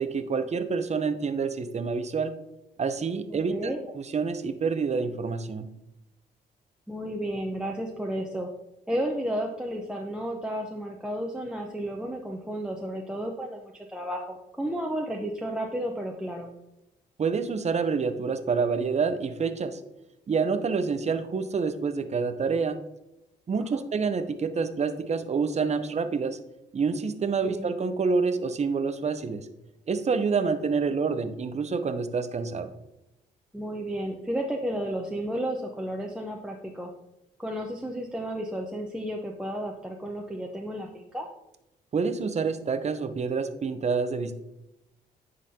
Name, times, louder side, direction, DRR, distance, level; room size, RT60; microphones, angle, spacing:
voice 1, 0.0-2.3 2.8-3.7 4.0-5.7 17.2-19.8 20.3-22.8 23.5-26.4 26.7-29.5 29.9-32.7 41.9-44.4, right 5 dB, 40° right, 10 dB, 0.7 m, -27 dB
voice 2, 3.3-3.8 6.9-8.5 8.9-16.5 23.7-23.8 27.4-27.7 33.5-36.9 37.4-41.3, right 1 dB, 5° right, 0 dB, 0.8 m, -32 dB
9.8 x 4.0 x 2.8 m, 0.89 s
supercardioid pair, 60°, 17 cm